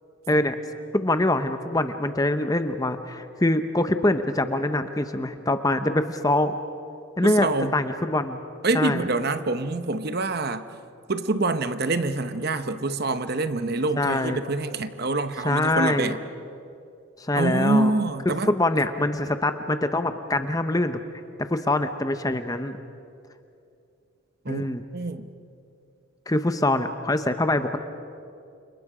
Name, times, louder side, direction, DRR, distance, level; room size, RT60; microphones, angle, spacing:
voice 1, 0.9-6.5 7.2-8.4 8.7-9.0 14.0-14.4 15.4-16.1 17.2-17.9 18.3-21.0 21.4-22.8 24.5-24.8 26.3-27.8, left 1 dB, 15° left, 9 dB, 0.9 m, -24 dB
voice 2, 7.2-7.8 8.6-10.7 11.1-16.2 17.3-18.5 24.4-24.6 24.9-25.3, right 2 dB, 50° right, 10 dB, 0.9 m, -26 dB
29.5 x 27.0 x 5.0 m, 2.6 s
head